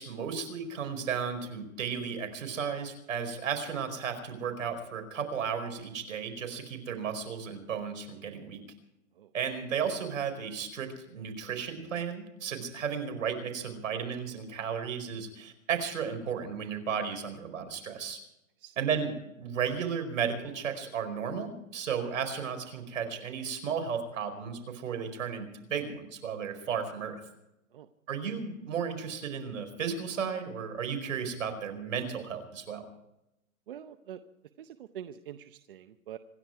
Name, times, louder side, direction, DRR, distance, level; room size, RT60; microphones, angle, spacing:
voice 1, 0.0-8.6 9.3-18.2 18.8-27.2 28.1-32.9, right 7 dB, 65° right, 7 dB, 5.0 m, -34 dB
voice 2, 33.7-34.2 34.6-36.2, right 10 dB, 40° right, 11 dB, 0.7 m, -45 dB
26.5 x 11.0 x 4.7 m, 0.86 s
hypercardioid pair, 165°, 42 cm